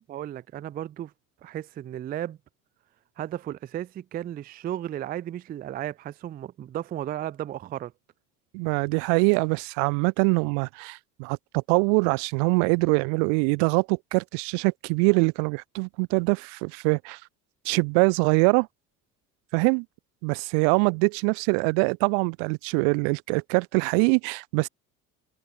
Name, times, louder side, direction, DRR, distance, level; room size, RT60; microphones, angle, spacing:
voice 1, 0.1-1.1 1.4-2.4 3.2-7.9, right 11 dB, 25° right, 0.3 m, -34 dB
voice 2, 8.5-17.2 17.6-18.7 19.5-19.9 20.2-24.7, right 40 dB or more, 65° right, 0.6 m, -23 dB
hypercardioid pair, 65°, 43 cm